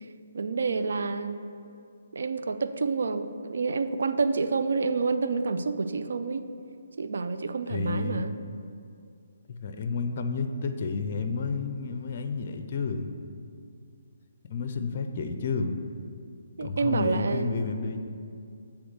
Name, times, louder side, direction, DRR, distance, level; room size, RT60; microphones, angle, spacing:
voice 1, 0.3-1.4 2.1-6.5 7.0-8.3 16.6-17.5, right 4 dB, 65° right, 9 dB, 0.4 m, -28 dB
voice 2, 7.7-8.2 9.5-13.1 14.5-15.7 16.6-18.1, left 4 dB, 45° left, 7 dB, 0.5 m, -31 dB
7.8 x 3.5 x 6.4 m, 2.4 s
figure-of-eight pair, 140°, 0 cm